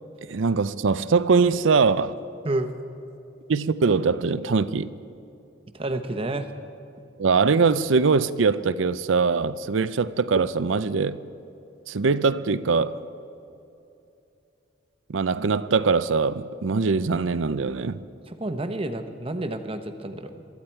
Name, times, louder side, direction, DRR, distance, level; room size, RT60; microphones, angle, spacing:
voice 1, 0.3-2.1 3.5-4.9 7.2-11.2 11.9-13.0 15.1-18.0, right 4 dB, 85° right, 0.6 m, -22 dB
voice 2, 5.7-6.5 18.3-20.5, right 1 dB, 30° right, 0.9 m, -30 dB
23.5 x 14.0 x 4.5 m
head